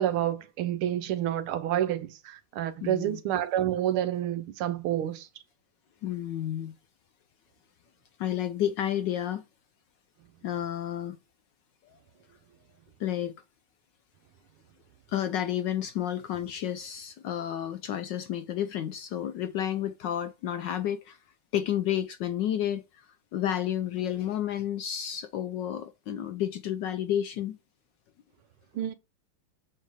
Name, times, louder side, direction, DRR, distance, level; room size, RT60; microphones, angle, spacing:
voice 1, 0.0-5.3 28.8-28.9, right 11 dB, 75° right, 1.6 m, -29 dB
voice 2, 2.8-3.2 6.0-6.7 8.2-9.4 10.4-11.2 13.0-13.3 15.1-21.2 21.5-27.6, left 11 dB, 75° left, 1.0 m, -31 dB
7.3 x 4.4 x 4.8 m
omnidirectional pair, 2.4 m